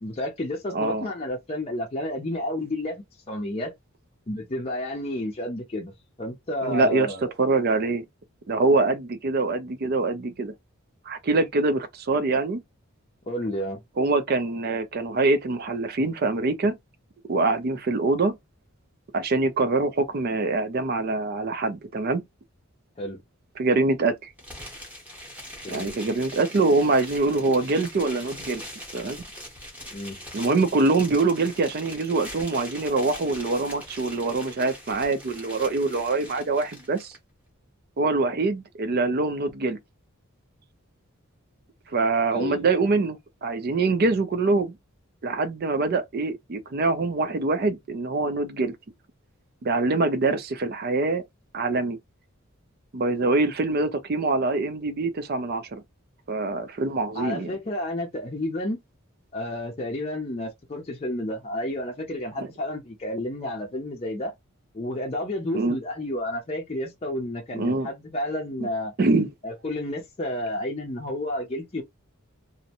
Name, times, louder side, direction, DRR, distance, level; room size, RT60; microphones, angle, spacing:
voice 1, 0.0-3.7 4.3-5.9 6.2-7.3 13.3-13.8 23.0-23.2 25.6-26.0 29.9-30.2 42.3-42.7 57.1-58.8 59.3-64.3 64.7-68.9 69.4-71.8, left 1 dB, 30° left, 0.5 m, -31 dB
voice 2, 0.7-1.1 6.6-7.1 7.4-8.0 8.5-10.5 11.1-12.6 14.0-16.7 17.3-18.4 19.1-22.2 23.6-24.3 25.7-28.6 28.9-29.2 30.3-37.2 38.0-39.8 41.9-44.8 45.2-48.7 49.6-51.2 51.5-52.0 52.9-55.8 56.3-57.5 62.4-62.5 65.5-65.8 67.5-67.9 69.0-69.3, right 3 dB, 45° right, 0.4 m, -24 dB
sound 1, 24.4-37.2, equal, 5° right, 0.9 m, -42 dB
2.5 x 2.1 x 2.8 m
head